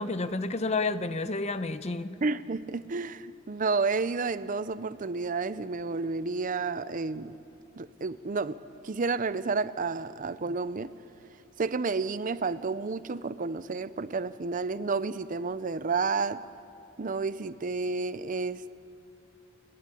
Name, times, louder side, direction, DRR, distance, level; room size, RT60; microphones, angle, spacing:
voice 1, 0.0-2.1, left 3 dB, 35° left, 12 dB, 0.8 m, -30 dB
voice 2, 2.2-7.4 7.8-8.6 8.8-10.9 11.6-16.4 17.0-18.7, right 4 dB, 40° right, 15 dB, 0.6 m, -31 dB
30.0 x 12.0 x 9.9 m, 2.6 s
head